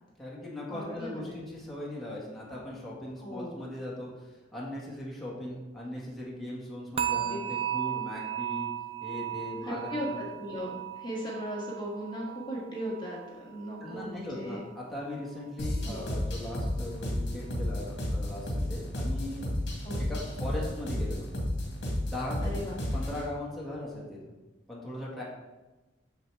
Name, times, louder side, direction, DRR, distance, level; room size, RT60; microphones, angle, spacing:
voice 1, 0.2-8.7 9.0-10.2 13.8-19.5 20.1-21.3 22.0-22.5 22.9-24.3 24.7-25.2, left 1 dB, ahead, -6 dB, 1.6 m, -39 dB
voice 2, 0.7-1.4 3.2-3.6 7.1-7.4 9.6-14.6 15.8-16.1 19.8-20.1 22.4-22.8, equal, 25° left, -4 dB, 1.5 m, -37 dB
sound 1, 7.0-14.0 14.3-14.7 15.2-15.3, right 11 dB, 30° right, 0.4 m, -36 dB
sound 2, 15.6-23.3, left 1 dB, 60° left, 1.9 m, -32 dB
8.0 x 6.8 x 3.4 m, 1.1 s
head